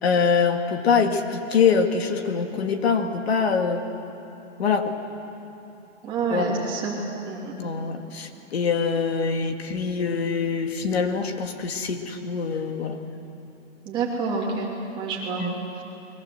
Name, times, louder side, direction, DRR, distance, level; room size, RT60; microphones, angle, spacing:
voice 1, 0.0-3.8 4.6-4.9 6.3-6.5 7.6-13.0 15.4-15.6, left 5 dB, 55° left, 5 dB, 2.0 m, -24 dB
voice 2, 6.0-7.0 7.2-7.9 13.8-15.5 15.8-15.9, right 4 dB, 15° right, -3 dB, 2.8 m, -28 dB
29.5 x 22.5 x 7.8 m, 2.9 s
hypercardioid pair, 175°, 36 cm